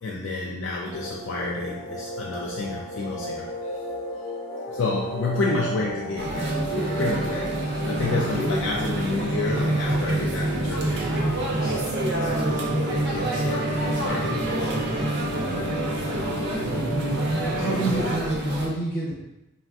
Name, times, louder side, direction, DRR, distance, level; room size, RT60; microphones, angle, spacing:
voice 1, 0.0-3.8 4.7-7.6 7.9-11.7 12.1-15.3 15.9-16.4 17.1-17.6, left 3 dB, 60° left, -3 dB, 0.3 m, -31 dB
sound 1, 0.9-18.0, equal, 10° left, 0.6 m, -34 dB
sound 2, 6.2-18.7, right 1 dB, 50° right, 0.4 m, -27 dB
voice 2, 17.2-19.2, right 1 dB, 40° left, -6 dB, 0.9 m, -28 dB
3.4 x 2.1 x 2.3 m, 0.94 s
head